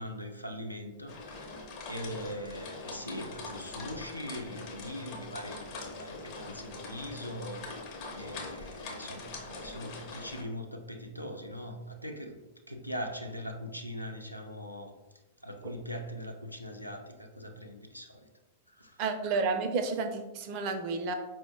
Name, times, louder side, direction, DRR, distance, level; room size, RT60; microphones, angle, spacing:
voice 1, 0.0-1.6 1.9-12.4 12.7-14.9 15.4-18.3 18.7-19.0, equal, 90° left, 3 dB, 0.3 m, -41 dB
sound 1, 1.1-10.4, left 3 dB, 45° left, 0.6 m, -43 dB
voice 2, 19.0-21.1, right 4 dB, 40° right, 6 dB, 0.4 m, -31 dB
4.5 x 2.0 x 2.6 m, 1.1 s
figure-of-eight pair, 95°, 0 cm